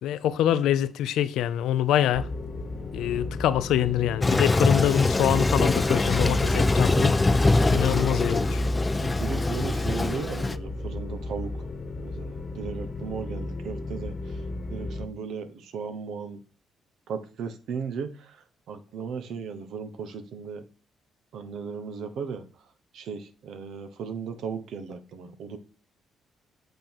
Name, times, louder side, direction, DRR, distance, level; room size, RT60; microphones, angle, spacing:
voice 1, 0.0-2.3 2.9-7.3 7.7-8.6, left 11 dB, 85° left, 0.5 m, -25 dB
sound 1, 2.1-15.1, left 1 dB, 40° left, 1.2 m, -31 dB
Toilet flush, 4.2-10.6, left 3 dB, 20° left, 0.3 m, -24 dB
voice 2, 9.0-11.7 12.0-14.4 14.7-16.4 17.1-20.6 21.3-22.4 22.9-25.6, right 6 dB, 75° right, 1.0 m, -36 dB
8.0 x 3.8 x 4.5 m
cardioid pair, 90°, 0 cm